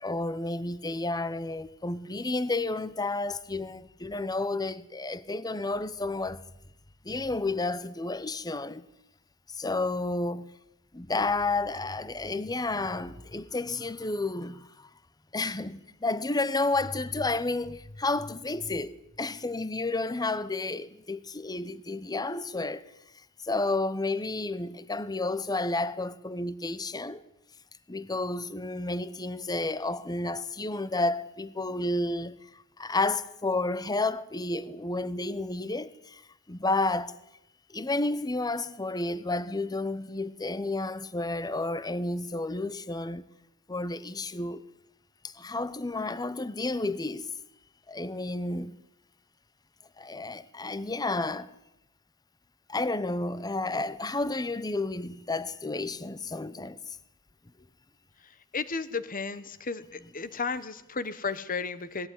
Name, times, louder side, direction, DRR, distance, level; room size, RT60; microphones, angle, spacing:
voice 1, 0.0-6.4 7.0-8.9 9.5-10.5 10.9-14.9 15.3-22.8 23.4-27.2 27.9-32.4 32.8-36.2 36.5-37.1 37.7-43.2 43.7-44.6 45.3-47.3 47.9-48.7 50.0-51.5 52.7-56.8, left 2 dB, 15° left, 0.8 m, -31 dB
voice 2, 58.5-59.8 60.1-62.1, left 4 dB, 40° left, 1.2 m, -33 dB
19.5 x 16.0 x 9.5 m
head